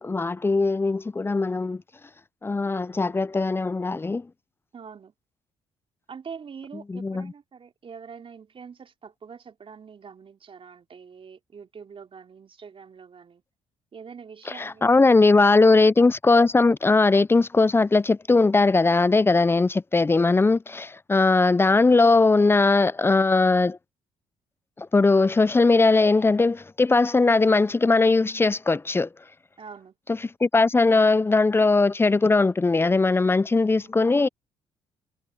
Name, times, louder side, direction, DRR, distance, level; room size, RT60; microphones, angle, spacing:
voice 1, 0.0-1.8 2.4-4.3 6.9-7.3 14.5-23.8 24.8-29.1 30.4-34.3, left 3 dB, 20° left, 0.5 m, -20 dB
voice 2, 4.7-5.1 6.1-13.4 13.9-15.2 29.6-30.0 33.7-34.0, right 6 dB, 45° right, 4.1 m, -44 dB
hypercardioid pair, 60°, 13 cm